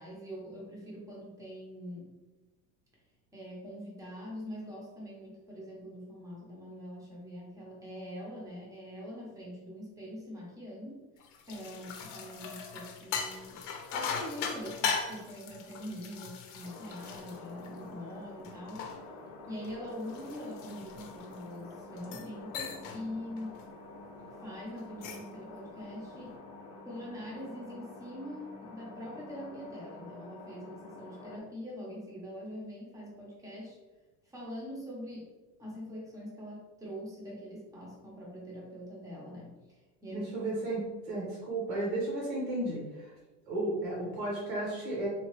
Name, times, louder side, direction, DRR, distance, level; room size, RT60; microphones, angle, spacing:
voice 1, 0.0-2.1 3.3-11.1 11.4-13.6 13.9-18.9 19.5-23.6 24.2-26.4 26.9-33.8 34.2-35.3 35.6-40.3 40.7-40.8, equal, 10° right, -4 dB, 0.7 m, -43 dB
sound 1, 11.2-18.0 18.4-21.5 22.0-22.3 22.5-23.0 23.4-23.6 24.8-25.3, left 6 dB, 85° left, 0.7 m, -39 dB
sound 2, 16.6-31.4, left 2 dB, 45° left, 0.6 m, -48 dB
voice 2, 40.1-40.8 41.1-43.1 43.5-45.1, right 1 dB, 80° right, -5 dB, 1.3 m, -33 dB
3.7 x 2.3 x 3.0 m, 1.2 s
cardioid pair, 160°, 36 cm